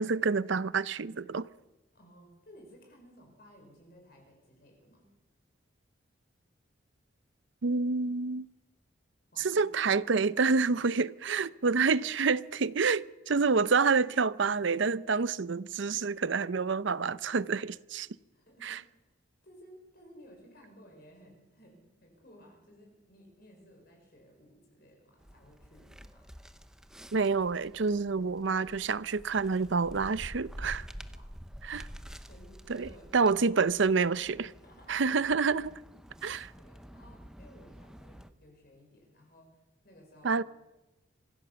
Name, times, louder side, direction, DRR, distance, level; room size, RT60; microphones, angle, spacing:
voice 1, 0.0-1.5 7.6-8.5 9.4-18.1 18.6-18.8 27.1-30.9 31.6-31.8 32.7-34.4 34.9-35.7 36.2-36.5 40.2-40.4, right 4 dB, 70° right, 0.6 m, -28 dB
voice 2, 1.9-5.1 9.3-9.7 11.3-11.4 18.3-19.1 19.4-26.4 31.1-31.3 31.7-32.0 32.3-33.5 33.9-35.4 36.6-40.4, equal, 50° left, 5.5 m, -57 dB
sound 1, 25.2-38.3, equal, 5° right, 0.7 m, -49 dB
25.0 x 16.0 x 7.0 m
head